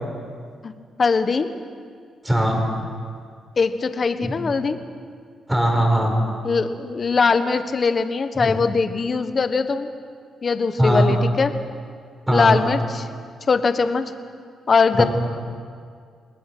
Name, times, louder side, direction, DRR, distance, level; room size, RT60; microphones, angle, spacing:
voice 1, 1.0-1.5 3.6-4.8 6.4-9.9 10.4-11.5 12.3-13.1 13.5-14.1 14.7-15.0, left 4 dB, 35° left, 9 dB, 1.3 m, -21 dB
voice 2, 2.2-2.6 4.2-4.3 5.5-6.1 8.3-8.6 10.8-11.1 12.3-12.6 15.0-15.1, right 1 dB, 10° right, 1 dB, 5.0 m, -19 dB
29.0 x 20.5 x 6.1 m, 2.1 s
cardioid pair, 120°, 0 cm